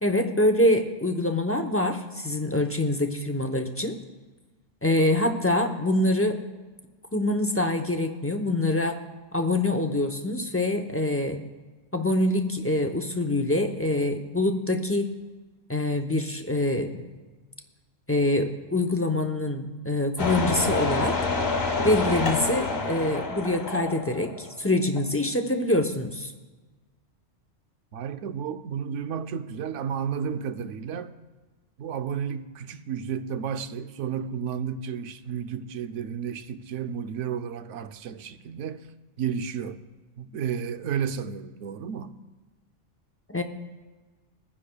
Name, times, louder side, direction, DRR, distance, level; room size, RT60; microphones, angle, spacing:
voice 1, 0.0-4.0 4.8-6.4 7.1-9.0 9.3-11.4 11.9-15.1 15.7-17.0 18.1-21.2 21.8-26.3 43.3-43.4, left 1 dB, 15° left, 0.5 m, -25 dB
sound 1, 20.2-24.7 25.0-25.1, left 3 dB, 55° left, 1.3 m, -27 dB
voice 2, 27.9-31.1 31.8-38.9 39.2-39.8 40.2-42.2, right 7 dB, 75° right, 0.9 m, -32 dB
22.5 x 9.8 x 2.2 m
omnidirectional pair, 1.3 m